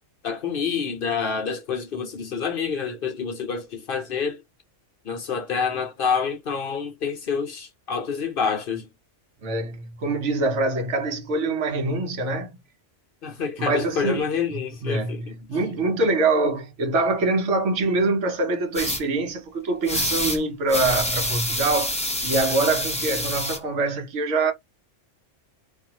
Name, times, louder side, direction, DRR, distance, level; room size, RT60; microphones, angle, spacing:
voice 1, 0.2-4.4 5.0-8.9 13.2-15.4, left 6 dB, 55° left, 0.8 m, -27 dB
voice 2, 9.4-12.6 13.6-14.2 14.8-24.5, right 2 dB, 75° right, 1.1 m, -24 dB
sound 1, 18.7-19.0 19.9-20.4 20.7-23.6, left 1 dB, 5° left, 0.7 m, -26 dB
2.5 x 2.4 x 2.8 m
omnidirectional pair, 1.3 m